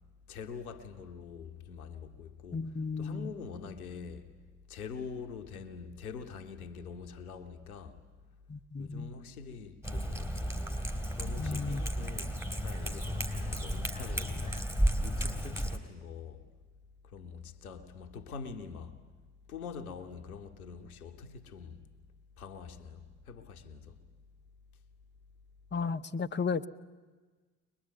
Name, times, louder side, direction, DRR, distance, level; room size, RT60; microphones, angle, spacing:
voice 1, 0.3-4.3 4.7-8.0 8.8-10.6 11.1-14.7 15.0-16.5 17.0-19.0 19.5-21.9 22.4-24.0, left 5 dB, 85° left, 1.1 m, -45 dB
voice 2, 2.5-3.3 8.5-9.1 11.4-11.8 25.7-26.7, left 5 dB, 25° left, 0.9 m, -34 dB
Cat, 9.8-15.8, equal, 5° right, 3.4 m, -33 dB
23.0 x 21.0 x 9.3 m
figure-of-eight pair, 40°, 43 cm